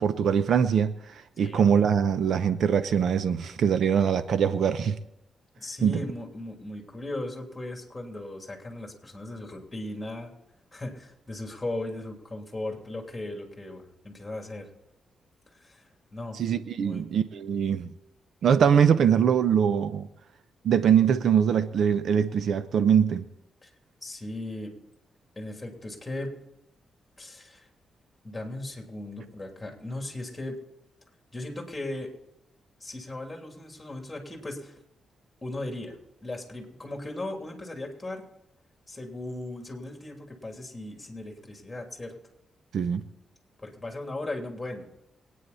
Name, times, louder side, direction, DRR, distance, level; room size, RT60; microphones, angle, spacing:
voice 1, 0.0-5.0 5.8-6.0 16.3-17.9 18.4-20.1 20.6-23.2 42.7-43.0, right 7 dB, 70° right, 0.7 m, -23 dB
voice 2, 1.4-1.7 5.6-10.3 10.7-14.7 15.5-16.4 16.8-17.1 23.6-23.7 24.0-24.7 25.3-26.3 27.2-27.7 28.2-30.6 31.3-32.1 32.8-34.8 35.4-36.0 36.2-38.2 38.9-42.1 43.6-44.9, left 2 dB, 15° left, 3.0 m, -37 dB
24.0 x 9.5 x 4.2 m
cardioid pair, 105°, 0 cm